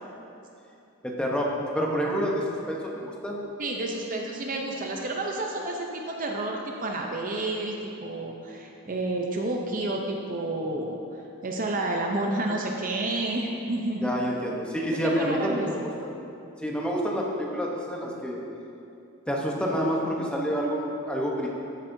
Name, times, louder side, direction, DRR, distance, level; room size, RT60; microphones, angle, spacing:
voice 1, 1.0-3.4 14.0-16.1 16.6-18.4 19.3-21.5, equal, 5° left, -2 dB, 0.9 m, -28 dB
voice 2, 3.6-11.0 11.4-14.1 14.9-15.7, right 2 dB, 35° right, 1 dB, 0.6 m, -30 dB
13.0 x 8.2 x 2.7 m, 2.7 s
head